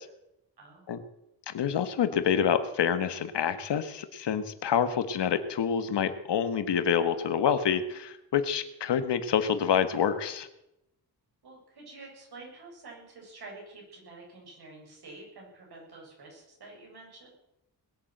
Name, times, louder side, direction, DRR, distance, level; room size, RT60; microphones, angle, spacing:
voice 1, 0.6-1.0 11.4-17.3, right 3 dB, 70° right, -1 dB, 7.3 m, -48 dB
voice 2, 1.5-10.5, left 8 dB, 85° left, 11 dB, 1.5 m, -27 dB
20.0 x 8.8 x 7.8 m, 0.87 s
wide cardioid pair, 135°, 41 cm